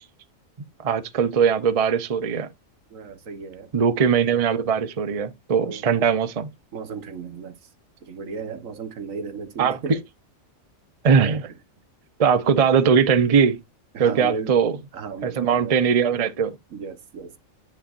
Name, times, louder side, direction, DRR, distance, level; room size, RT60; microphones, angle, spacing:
voice 1, 0.8-2.5 3.7-6.5 9.6-9.8 11.0-11.5 12.2-13.6 14.0-14.8 15.2-16.5, right 6 dB, 35° right, 0.7 m, -20 dB
voice 2, 2.9-3.7 4.0-4.1 5.6-6.1 6.7-7.6 8.0-10.0 13.9-14.5 14.9-15.8 16.7-17.4, right 5 dB, 75° right, 1.5 m, -35 dB
10.0 x 5.7 x 2.5 m
omnidirectional pair, 1.4 m